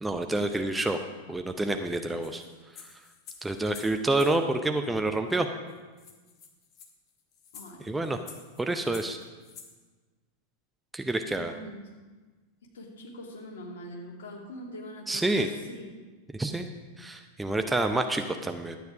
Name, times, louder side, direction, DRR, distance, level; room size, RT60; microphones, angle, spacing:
voice 1, 0.0-1.0 1.3-2.4 2.8-2.9 3.4-5.5 7.8-8.2 8.6-9.2 10.9-11.5 15.1-15.5 16.3-16.7 17.0-18.8, right 2 dB, 10° right, 6 dB, 0.7 m, -28 dB
sound 1, 2.2-4.4 5.4-5.5 5.7-5.8 6.0-9.7, left 6 dB, 35° left, 1.6 m, -49 dB
voice 2, 7.5-7.9 11.3-11.8 12.7-15.9, left 1 dB, 60° left, -1 dB, 2.5 m, -43 dB
12.0 x 9.2 x 4.9 m, 1.3 s
figure-of-eight pair, 90°, 0 cm